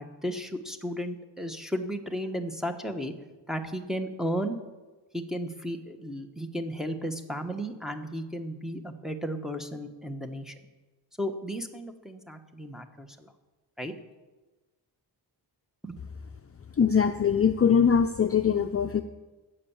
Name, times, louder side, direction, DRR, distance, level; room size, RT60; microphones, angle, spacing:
voice 1, 0.0-3.1 3.5-4.6 5.1-10.5 11.2-13.3 13.8-13.9 15.8-16.0, equal, ahead, 3 dB, 1.2 m, -34 dB
voice 2, 16.8-19.0, left 7 dB, 35° left, 7 dB, 0.5 m, -22 dB
15.5 x 8.4 x 7.2 m, 1.2 s
wide cardioid pair, 135°, 42 cm